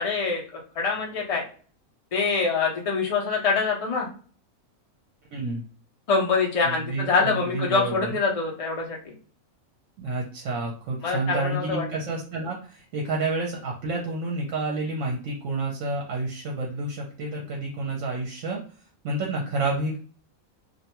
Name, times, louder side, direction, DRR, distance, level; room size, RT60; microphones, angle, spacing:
voice 1, 0.0-1.4 2.1-4.1 6.1-9.1 11.0-11.8, left 4 dB, 50° left, -1 dB, 0.4 m, -25 dB
voice 2, 5.3-5.6 6.6-8.2 10.0-18.6 19.0-20.0, right 2 dB, 65° right, -1 dB, 0.9 m, -29 dB
2.5 x 2.2 x 2.9 m, 0.41 s
omnidirectional pair, 1.5 m